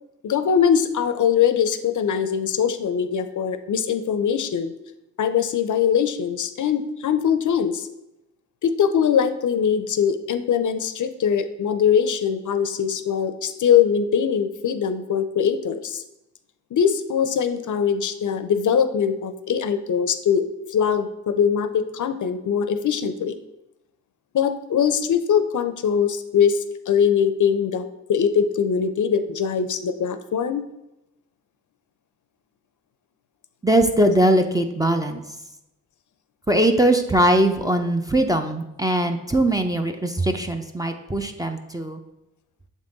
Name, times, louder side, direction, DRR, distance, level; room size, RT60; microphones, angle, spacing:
voice 1, 0.2-4.7 5.2-7.9 8.6-16.0 16.7-23.4 24.3-30.6, left 7 dB, 70° left, 10 dB, 0.5 m, -22 dB
voice 2, 33.6-35.2 36.5-42.0, right 1 dB, 10° right, 5 dB, 0.4 m, -21 dB
7.2 x 3.6 x 3.9 m, 0.91 s
wide cardioid pair, 125°, 32 cm